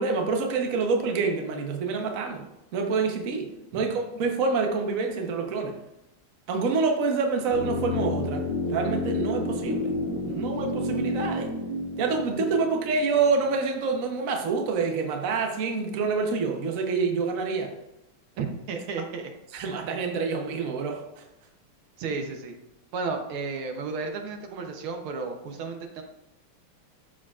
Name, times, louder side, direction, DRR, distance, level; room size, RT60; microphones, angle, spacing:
voice 1, 0.0-2.4 2.7-3.5 3.7-5.7 6.5-8.4 8.7-9.9 10.2-11.5 12.0-17.7 19.5-21.0, right 4 dB, 50° right, 3 dB, 1.1 m, -27 dB
sound 1, 7.5-13.5 13.8-13.9, left 2 dB, 75° left, 2.9 m, -30 dB
voice 2, 18.4-19.3 22.0-22.5 22.9-26.0, right 4 dB, 75° right, 4 dB, 1.7 m, -33 dB
13.0 x 4.9 x 2.4 m, 0.88 s
omnidirectional pair, 2.4 m